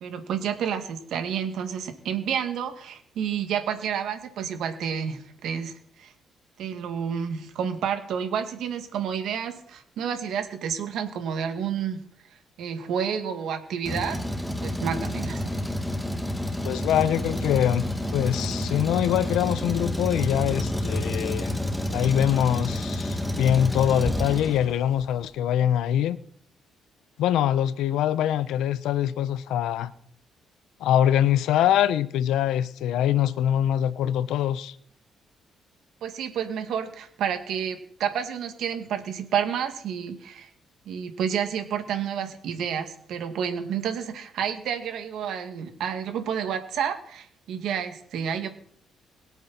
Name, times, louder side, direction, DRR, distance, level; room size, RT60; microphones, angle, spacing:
voice 1, 0.0-6.1 6.6-12.0 12.6-14.2 14.6-15.5 36.0-40.5 40.9-48.5, right 8 dB, 80° right, 2.2 m, -30 dB
Truck, 13.8-25.0, left 1 dB, 5° left, 1.9 m, -29 dB
voice 2, 16.6-17.9 18.1-21.6 21.9-26.2 27.2-29.9 30.8-34.8, left 10 dB, 85° left, 0.8 m, -24 dB
22.0 x 8.4 x 4.4 m
cardioid pair, 90°, 0 cm